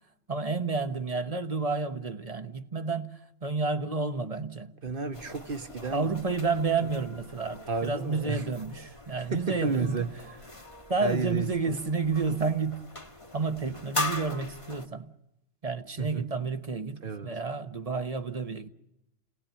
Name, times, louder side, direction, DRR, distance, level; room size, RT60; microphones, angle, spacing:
voice 1, 0.3-4.7 5.9-10.1 10.9-13.1 13.3-15.1 15.6-18.7, right 4 dB, 35° right, 1.2 m, -30 dB
voice 2, 4.8-6.1 6.8-6.9 7.7-8.4 9.2-10.1 11.0-11.5 16.0-16.2 17.0-17.3, right 4 dB, 55° right, 1.5 m, -32 dB
sound 1, 5.1-14.9, left 2 dB, 30° left, 1.5 m, -40 dB
29.0 x 18.5 x 8.9 m
omnidirectional pair, 1.1 m